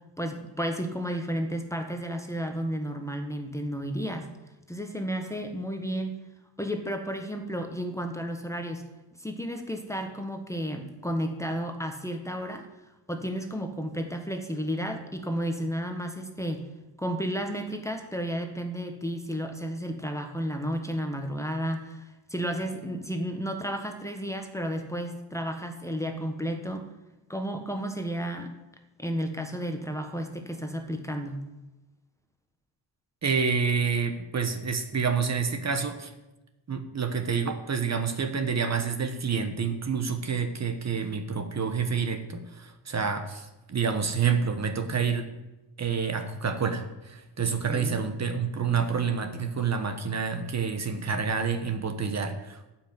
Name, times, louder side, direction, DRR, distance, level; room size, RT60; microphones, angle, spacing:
voice 1, 0.2-4.3 4.7-6.2 6.6-8.8 9.2-12.7 13.1-16.7 17.0-26.8 27.3-28.5 29.0-31.4 47.7-48.0, equal, 5° left, 5 dB, 1.2 m, -32 dB
voice 2, 33.2-36.1 36.7-45.3 45.8-52.7, right 6 dB, 35° right, 7 dB, 1.3 m, -28 dB
12.5 x 6.0 x 9.0 m, 1.0 s
cardioid pair, 125°, 43 cm